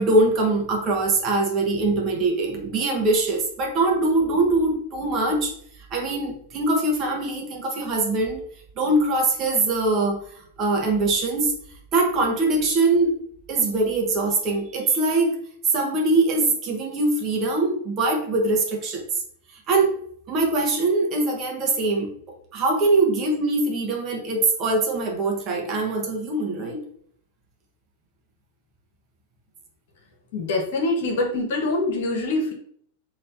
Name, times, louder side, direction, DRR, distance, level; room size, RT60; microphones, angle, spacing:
voice 1, 0.0-5.5 5.9-8.4 8.8-10.2 10.6-11.5 11.9-13.1 13.5-15.3 15.6-19.0 19.7-20.0 20.3-22.1 22.5-26.8, right 2 dB, 35° right, 0 dB, 1.1 m, -22 dB
voice 2, 30.3-32.5, left 2 dB, 55° left, 1 dB, 1.2 m, -24 dB
3.3 x 3.1 x 4.1 m, 0.62 s
figure-of-eight pair, 90°, 0 cm